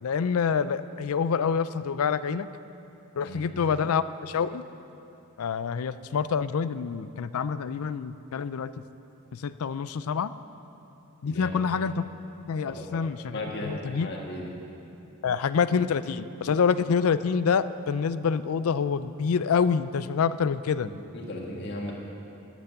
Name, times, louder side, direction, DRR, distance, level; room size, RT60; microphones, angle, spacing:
voice 1, 0.0-2.5 3.2-4.6 5.4-8.7 9.3-10.3 11.2-12.1 12.5-14.1 15.2-20.9, left 6 dB, 90° left, 14 dB, 0.4 m, -27 dB
voice 2, 11.2-11.6 12.7-13.1 13.3-14.5 21.1-21.9, left 1 dB, 55° left, -1 dB, 1.6 m, -36 dB
12.0 x 8.2 x 8.0 m, 2.9 s
head